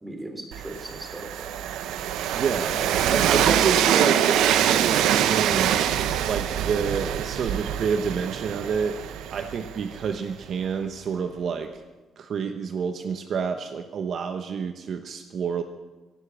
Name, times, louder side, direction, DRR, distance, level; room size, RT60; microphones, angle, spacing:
voice 1, 0.0-1.5 2.7-2.9 3.2-3.7, right 1 dB, 15° right, 5 dB, 3.1 m, -37 dB
Train, 0.5-10.4, right 10 dB, 90° right, 0.8 m, -24 dB
voice 2, 2.3-2.8 3.0-5.7 6.3-9.0 9.3-11.7 12.2-15.6, right 6 dB, 60° right, 7 dB, 0.9 m, -28 dB
17.0 x 9.4 x 7.3 m, 1.2 s
cardioid pair, 90°, 0 cm